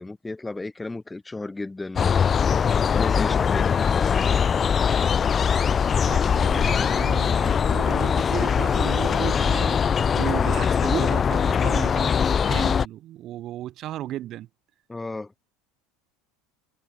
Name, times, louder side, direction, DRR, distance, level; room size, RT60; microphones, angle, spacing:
voice 1, 0.0-2.1 2.9-4.7 14.9-15.3, left 2 dB, 10° left, 6.9 m, -34 dB
sound 1, 2.0-12.9, left 7 dB, 30° left, 2.5 m, -21 dB
voice 2, 5.9-9.8 10.1-14.5, right 13 dB, 45° right, 3.7 m, -34 dB
figure-of-eight pair, 70°, 0 cm